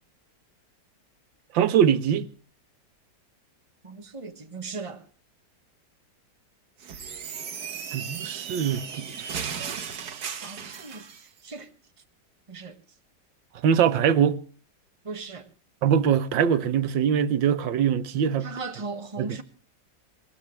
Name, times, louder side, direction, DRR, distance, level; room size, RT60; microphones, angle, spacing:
voice 1, 1.5-2.3 7.9-9.3 13.6-14.4 15.8-18.5 19.2-19.4, right 8 dB, 85° right, 1.7 m, -23 dB
voice 2, 3.8-5.1 10.4-11.1 11.4-11.7 12.5-12.7 15.0-15.5 18.4-19.4, right 4 dB, 20° right, 1.4 m, -37 dB
sound 1, 6.8-11.2, right 7 dB, 60° right, 1.7 m, -36 dB
20.5 x 20.0 x 3.2 m
omnidirectional pair, 2.0 m